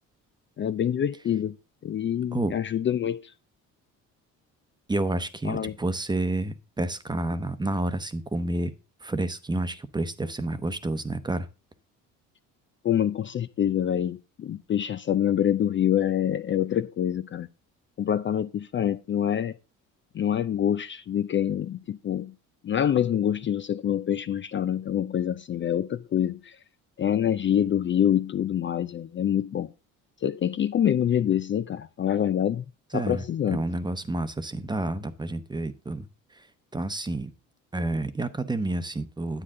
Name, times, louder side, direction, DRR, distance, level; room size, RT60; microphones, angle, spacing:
voice 1, 0.6-1.6 1.8-3.3 5.4-5.7 12.8-17.5 18.0-19.5 20.1-22.3 22.6-26.6 27.0-29.7 30.2-32.6 32.9-33.6, left 10 dB, 35° left, 0.5 m, -26 dB
voice 2, 4.9-8.7 9.0-11.5 32.9-36.1 36.3-36.5 36.7-37.3 37.7-39.4, right 2 dB, 15° right, 0.9 m, -29 dB
10.0 x 8.4 x 3.7 m
cardioid pair, 100°, 32 cm